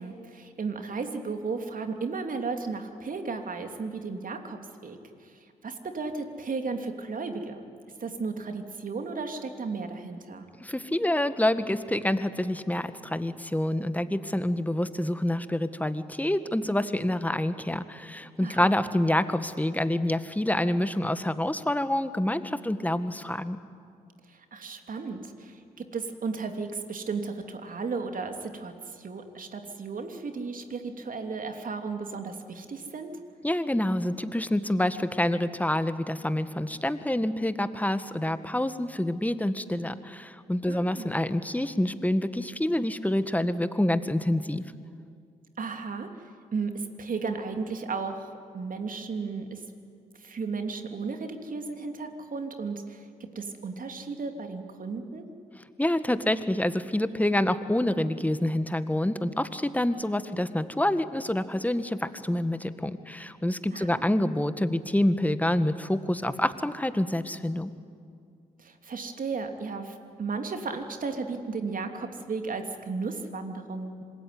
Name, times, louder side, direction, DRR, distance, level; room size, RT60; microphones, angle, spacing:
voice 1, 0.0-5.0 5.2-5.3 5.6-7.7 8.0-10.4 18.4-18.7 24.3-33.1 40.7-41.1 45.6-46.1 46.5-49.6 50.2-53.1 53.3-55.3 63.7-64.1 68.6-74.0, right 4 dB, 50° right, 6 dB, 3.0 m, -34 dB
voice 2, 10.6-23.6 33.4-44.6 55.8-67.7, left 1 dB, 10° left, 12 dB, 1.8 m, -27 dB
26.5 x 20.5 x 9.7 m, 2.3 s
hypercardioid pair, 40°, 18 cm